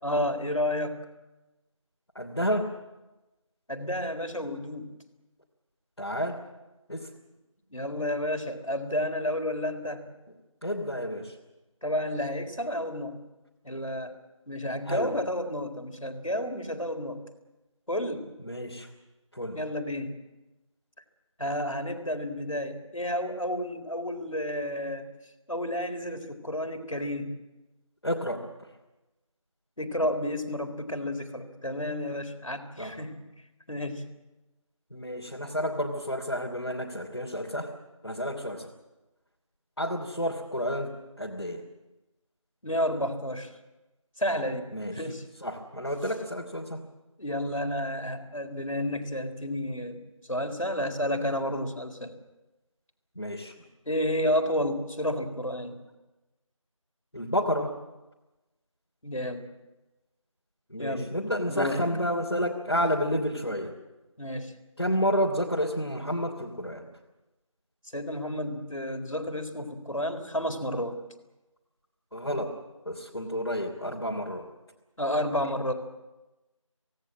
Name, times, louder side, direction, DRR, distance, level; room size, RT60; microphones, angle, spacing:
voice 1, 0.0-1.1 3.7-5.0 7.7-10.1 11.8-13.2 13.6-14.2 14.5-17.2 17.9-18.3 19.5-20.2 21.4-25.1 25.5-27.3 29.8-33.2 33.7-34.1 42.6-43.5 44.2-45.2 47.2-50.0 50.3-52.1 53.9-55.8 59.0-59.5 60.8-61.1 61.5-61.8 64.2-64.5 67.9-71.0 75.0-75.7, left 1 dB, 75° left, 7 dB, 4.0 m, -31 dB
voice 2, 2.1-2.7 6.0-6.4 6.9-7.1 10.6-11.4 14.8-15.1 18.4-18.9 19.3-19.6 28.0-28.4 32.8-33.0 34.9-37.7 38.0-38.7 39.8-41.6 44.7-45.1 45.4-46.8 53.1-53.5 57.1-57.7 60.7-63.7 64.8-66.9 72.1-72.5 72.8-74.5, equal, 55° left, -3 dB, 3.1 m, -30 dB
24.5 x 18.5 x 7.6 m, 1.1 s
figure-of-eight pair, 180°, 17 cm